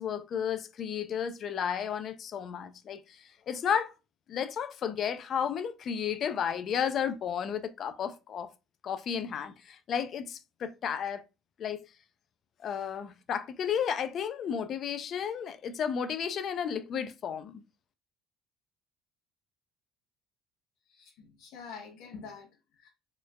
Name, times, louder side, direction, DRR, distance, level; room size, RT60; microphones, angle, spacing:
voice 1, 0.0-3.9 4.3-8.5 8.8-11.2 11.6-11.8 12.6-17.6, left 8 dB, 45° left, 0.4 m, -33 dB
voice 2, 20.8-22.9, left 5 dB, 85° left, 0.8 m, -47 dB
4.3 x 3.1 x 2.2 m
cardioid pair, 135°, 0 cm